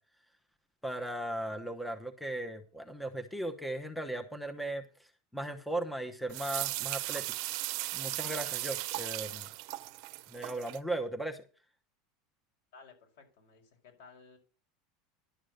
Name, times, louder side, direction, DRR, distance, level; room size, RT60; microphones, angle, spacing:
voice 1, 0.8-4.8 5.3-7.2 7.9-9.5 10.3-11.4, right 1 dB, 5° left, 7 dB, 0.9 m, -37 dB
sound 1, 6.3-10.8, right 20 dB, 55° right, 0.7 m, -37 dB
voice 2, 12.7-14.4, left 4 dB, 75° left, 2 dB, 5.2 m, -56 dB
11.5 x 6.2 x 6.5 m, 0.37 s
supercardioid pair, 155°, 0 cm